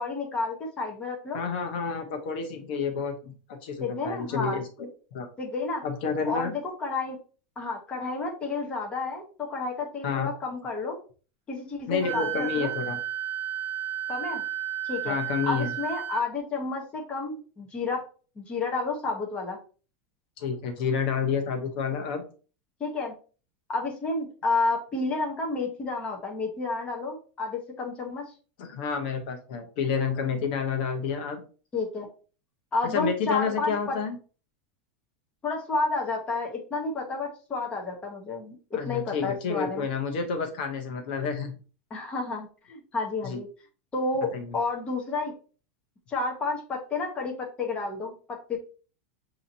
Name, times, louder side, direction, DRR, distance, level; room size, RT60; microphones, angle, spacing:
voice 1, 0.0-1.4 3.8-4.6 5.4-5.8 6.2-7.2 7.6-11.0 11.5-12.7 14.1-14.4 14.8-15.2 15.4-18.0 18.4-19.6 22.8-23.1 23.7-28.3 31.7-32.1 32.7-34.0 35.4-39.9 41.9-43.5 43.9-45.3 46.1-48.6, left 3 dB, 15° left, 0 dB, 1.0 m, -31 dB
voice 2, 1.3-4.9 5.1-5.3 5.8-6.5 10.0-10.3 11.9-13.0 15.0-15.7 20.4-22.2 28.6-31.4 32.8-34.2 38.7-41.6 43.2-43.4 44.3-44.5, left 6 dB, 55° left, 5 dB, 0.9 m, -29 dB
Wind instrument woodwind instrument, 12.0-16.2, right 11 dB, 25° right, 1.2 m, -33 dB
6.4 x 2.9 x 2.7 m, 0.37 s
supercardioid pair, 160°, 6 cm